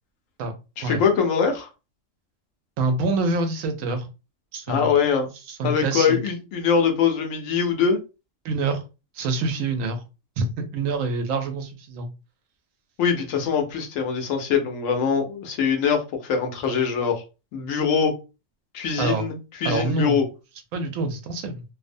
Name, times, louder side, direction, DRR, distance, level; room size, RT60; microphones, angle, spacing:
voice 1, 0.8-1.7 4.7-5.3 5.6-8.0 13.0-17.1 17.5-18.1 18.7-20.2, left 6 dB, 80° left, 1.0 m, -23 dB
voice 2, 2.8-4.1 4.5-4.9 5.5-6.2 8.4-8.8 9.2-10.0 10.4-12.1 19.0-19.2 19.6-20.2 20.7-21.6, right 3 dB, 90° right, 1.0 m, -26 dB
2.6 x 2.0 x 2.5 m
omnidirectional pair, 1.4 m